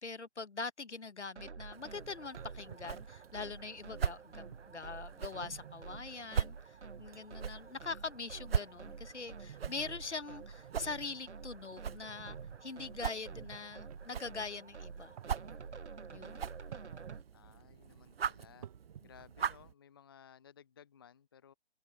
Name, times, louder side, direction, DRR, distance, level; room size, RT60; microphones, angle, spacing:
voice 1, 0.0-15.1 16.1-16.4, left 4 dB, 90° left, 1.4 m, -43 dB
sound 1, 1.4-17.2, right 5 dB, 80° right, 1.3 m, -50 dB
sound 2, 1.7-19.7, right 7 dB, 60° right, 0.7 m, -42 dB
sound 3, 2.4-3.6 4.5-4.6 5.4-6.1 6.7-6.8 7.1-7.2 7.5-7.8 8.3-10.1 10.5-11.2 12.0-12.6 13.2-14.0 15.0-15.7 16.7-17.3 17.6-19.4, right 10 dB, 35° right, 1.9 m, -53 dB
voice 2, 17.3-18.7 19.0-21.5, left 8 dB, 20° left, 0.6 m, -59 dB
figure-of-eight pair, 150°, 34 cm